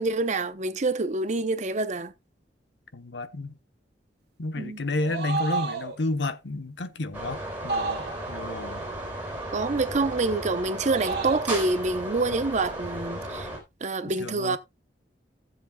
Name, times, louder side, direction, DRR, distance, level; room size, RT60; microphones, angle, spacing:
voice 1, 0.0-2.1 4.6-4.8 9.5-13.5 13.8-14.6, right 3 dB, 40° right, 0.7 m, -27 dB
voice 2, 2.9-3.5 4.4-8.0 8.3-8.8 12.3-12.4 14.0-14.6, left 2 dB, 80° left, 1.0 m, -31 dB
sound 1, 4.9-6.0 7.7-8.4 10.7-11.5, right 4 dB, 65° right, 1.8 m, -31 dB
sound 2, 7.1-13.6, right 1 dB, 10° right, 3.8 m, -35 dB
16.0 x 7.6 x 2.3 m
head